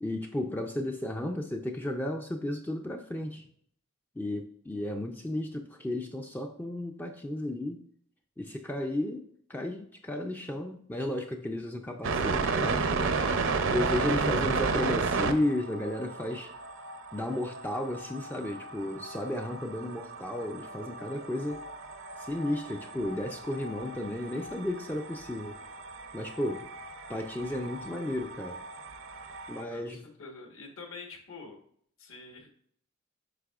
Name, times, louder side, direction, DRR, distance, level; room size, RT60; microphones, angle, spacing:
voice 1, 0.0-3.4 4.2-7.8 8.4-12.9 13.7-16.5 17.1-21.6 22.2-25.5 26.1-26.7 27.1-28.6 29.5-30.0, left 1 dB, 10° left, 3 dB, 0.3 m, -33 dB
sound 1, 12.0-29.6, right 4 dB, 60° right, 0.5 m, -34 dB
voice 2, 29.7-31.6 32.0-32.5, left 4 dB, 65° left, 2 dB, 1.3 m, -46 dB
8.1 x 5.4 x 2.4 m, 0.64 s
head